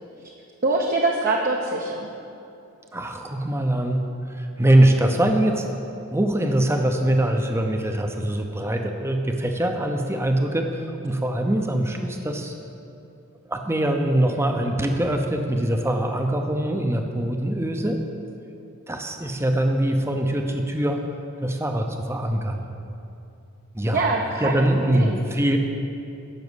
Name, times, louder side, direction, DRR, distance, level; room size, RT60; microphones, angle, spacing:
voice 1, 0.6-2.1 23.9-24.6 24.9-25.2, right 2 dB, 40° right, 0 dB, 0.8 m, -24 dB
voice 2, 2.9-5.8 6.1-12.5 13.5-18.0 18.9-21.1 21.4-22.7 23.7-24.1 24.4-25.6, right 1 dB, 10° right, 4 dB, 0.7 m, -23 dB
12.0 x 6.3 x 8.1 m, 2.6 s
head